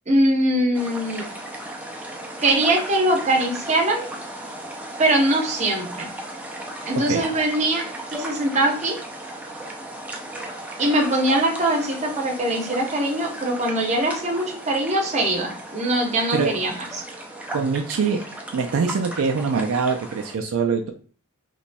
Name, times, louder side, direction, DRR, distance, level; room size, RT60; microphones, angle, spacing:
voice 1, 0.1-1.2 2.4-4.1 5.0-6.1 6.9-9.0 10.8-17.0, right 1 dB, 30° right, 1 dB, 0.8 m, -22 dB
sound 1, 0.7-20.4, right 1 dB, 5° right, 0.4 m, -36 dB
voice 2, 17.5-18.2 18.5-20.9, right 5 dB, 70° right, 4 dB, 0.4 m, -23 dB
4.0 x 3.0 x 2.2 m, 0.40 s
head